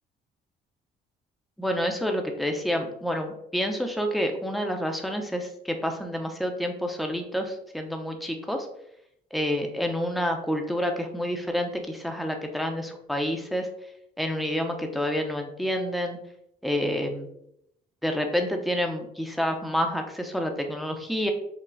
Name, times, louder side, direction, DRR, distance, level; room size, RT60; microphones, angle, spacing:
voice 1, 1.6-8.7 9.3-13.7 14.2-16.2 16.6-17.3 18.0-21.3, equal, ahead, 4 dB, 0.6 m, -28 dB
5.5 x 2.2 x 3.9 m, 0.76 s
cardioid pair, 110°, 17 cm